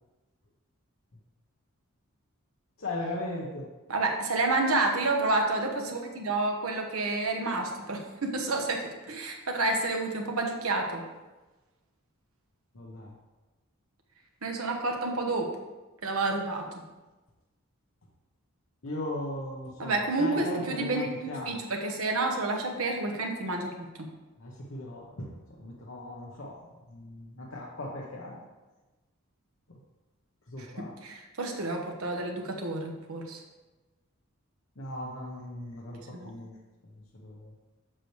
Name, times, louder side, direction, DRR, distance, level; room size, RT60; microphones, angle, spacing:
voice 1, 2.8-3.7 12.7-13.1 18.8-21.6 24.4-26.6 26.9-28.4 29.7-29.8 30.5-30.9 34.8-36.6 37.2-37.5, left 1 dB, 70° left, -3 dB, 0.9 m, -38 dB
voice 2, 3.9-11.0 14.4-15.5 16.0-16.6 19.8-23.9 31.0-33.4 36.1-36.3, right 2 dB, 80° right, 3 dB, 1.1 m, -29 dB
7.5 x 6.6 x 3.2 m, 1.1 s
head